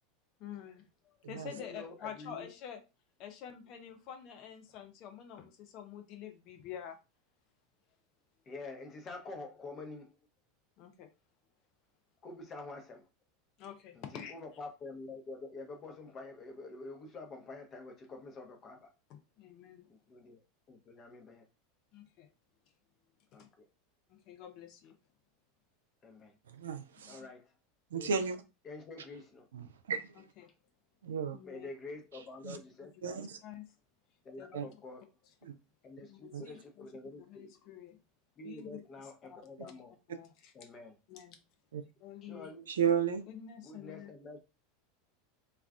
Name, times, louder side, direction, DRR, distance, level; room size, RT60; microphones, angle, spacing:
voice 1, 0.4-2.8 3.2-7.0 10.8-11.1 13.6-14.3 19.1-19.9 21.9-22.3 23.3-23.5 24.1-24.9 27.0-27.3 30.1-30.5 31.3-31.7 32.8-33.7 34.4-34.6 36.1-38.0 38.4-38.8 39.3-39.4 40.1-40.5 41.1-41.4 42.0-42.5 43.3-44.1, left 9 dB, 50° left, 0.6 m, -48 dB
voice 2, 1.6-2.5 8.5-10.2 12.2-13.0 13.9-18.9 19.9-20.4 20.7-21.5 23.3-23.6 26.0-26.3 27.1-27.5 27.9-28.1 28.6-29.5 31.4-33.2 34.2-35.0 35.8-37.5 38.4-39.9 40.5-41.0 42.2-42.6 43.6-44.4, left 3 dB, 35° left, 0.9 m, -47 dB
voice 3, 26.5-27.2 27.9-28.4 29.5-30.1 31.0-31.4 32.4-32.6 33.0-33.4 34.5-34.6 35.4-35.5 36.3-36.4 41.7-41.8 42.7-43.2, right 7 dB, 80° right, 0.4 m, -33 dB
2.3 x 2.3 x 3.5 m
hypercardioid pair, 85°, 0 cm